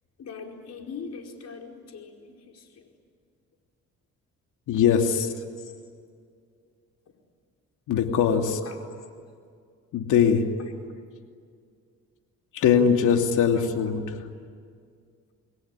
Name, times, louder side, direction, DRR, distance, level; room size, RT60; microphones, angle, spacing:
voice 1, 0.2-2.9 5.1-5.7 8.4-8.9 10.6-10.7 13.1-13.2 13.5-13.6, left 5 dB, 60° left, 2 dB, 4.9 m, -42 dB
voice 2, 4.7-5.3 7.9-8.6 9.9-10.4 12.5-14.2, left 7 dB, 85° left, 4 dB, 2.9 m, -21 dB
28.0 x 21.0 x 10.0 m, 2.2 s
cardioid pair, 90°, 30 cm